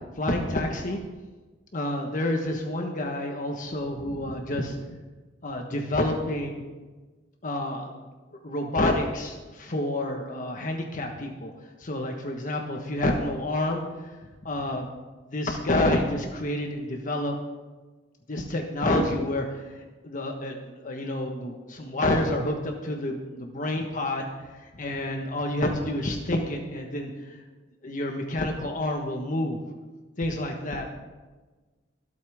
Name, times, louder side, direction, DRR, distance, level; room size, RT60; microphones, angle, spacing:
voice 1, 0.2-1.0 1.7-4.8 5.4-6.6 7.4-8.1 8.4-11.5 11.8-14.1 14.4-14.9 15.3-17.3 18.3-19.6 20.0-27.4 27.8-29.6 30.2-30.9, left 1 dB, 45° left, 2 dB, 1.3 m, -28 dB
24.5 x 8.4 x 3.6 m, 1.3 s
head